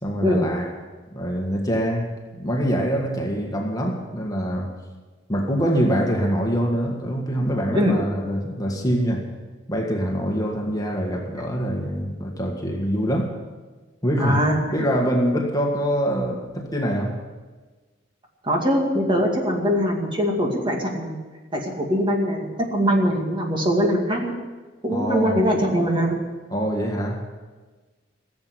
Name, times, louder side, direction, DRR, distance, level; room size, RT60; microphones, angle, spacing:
voice 1, 0.0-0.7 1.1-4.8 5.3-9.3 9.7-13.4 14.0-17.2 24.9-25.4 26.5-27.3, equal, 20° left, 1.7 m, -24 dB
voice 2, 14.2-14.6 18.4-21.2 21.5-24.3 24.8-26.2, equal, 25° right, 2.3 m, -22 dB
16.0 x 7.9 x 9.6 m
head